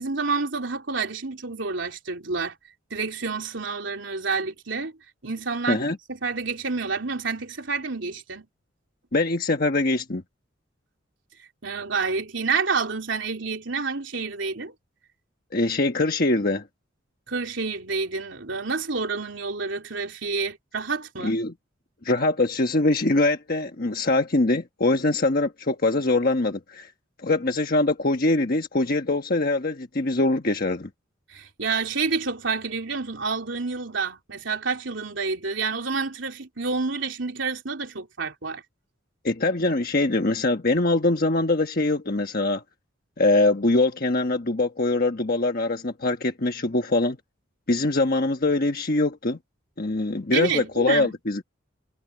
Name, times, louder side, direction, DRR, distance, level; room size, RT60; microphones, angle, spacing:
voice 1, 0.0-2.6 2.9-4.9 5.2-5.8 6.1-8.5 11.6-14.7 17.3-21.4 31.3-38.6 50.3-51.1, right 4 dB, 70° right, 3.4 m, -28 dB
voice 2, 9.1-10.2 15.5-16.6 21.2-21.5 22.0-26.9 27.2-30.9 39.2-42.6 43.2-47.2 47.7-49.4 49.8-51.4, left 2 dB, 50° left, 1.3 m, -23 dB
head